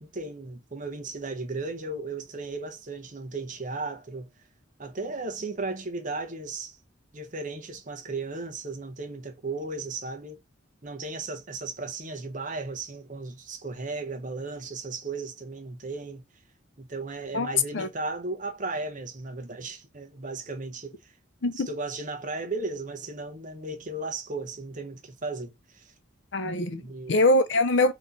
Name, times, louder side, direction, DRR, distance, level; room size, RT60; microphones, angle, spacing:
voice 1, 0.0-4.3 4.8-6.8 7.1-10.4 10.8-16.2 16.8-21.1 21.5-25.9 26.8-27.2, right 3 dB, 40° right, 0.9 m, -35 dB
voice 2, 17.3-17.9 21.4-21.7 26.3-26.8 27.1-27.9, left 2 dB, 60° left, 0.7 m, -23 dB
3.7 x 3.0 x 4.0 m
head